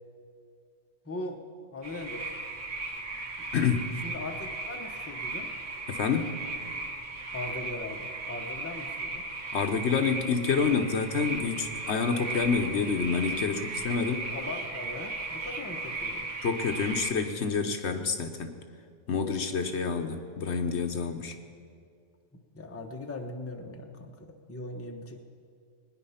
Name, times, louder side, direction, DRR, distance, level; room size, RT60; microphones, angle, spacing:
voice 1, 1.0-1.4 1.7-2.3 3.4-3.5 4.0-5.5 7.3-9.3 14.3-16.3 22.5-25.2, left 2 dB, 10° left, 3 dB, 0.9 m, -39 dB
sound 1, 1.8-17.1, right 2 dB, 80° right, 1.8 m, -36 dB
voice 2, 3.5-3.9 5.9-6.3 9.5-14.3 16.4-18.5 19.1-21.4, left 5 dB, 65° left, 6 dB, 1.2 m, -28 dB
21.0 x 10.0 x 5.7 m, 2.3 s
omnidirectional pair, 1.3 m